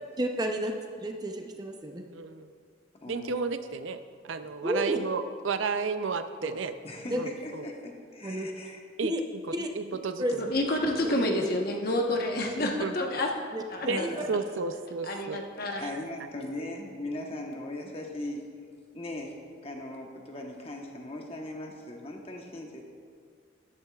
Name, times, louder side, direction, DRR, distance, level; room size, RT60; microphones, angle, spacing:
voice 1, 0.2-2.0 4.6-5.0 6.4-6.5 7.1-7.2 8.2-8.5 9.0-9.2 9.5-9.7 10.2-10.5 11.0-11.5 13.5-14.3, right 1 dB, 20° right, 3 dB, 0.6 m, -32 dB
voice 2, 2.1-2.5 3.1-4.0 4.3-6.7 7.2-7.6 9.0-9.1 9.8-10.5 12.8-12.9 13.8-14.0 14.3-15.4 15.8-15.9, right 5 dB, 80° right, 10 dB, 0.5 m, -32 dB
voice 3, 3.0-3.4 6.8-8.8 13.9-14.3 15.8-18.4 18.9-19.4 19.6-22.8, left 1 dB, 30° left, 1 dB, 1.1 m, -39 dB
voice 4, 10.4-13.3 13.7-14.1 15.0-15.8, left 1 dB, 50° left, 1 dB, 1.1 m, -29 dB
13.5 x 11.5 x 2.4 m, 2.1 s
head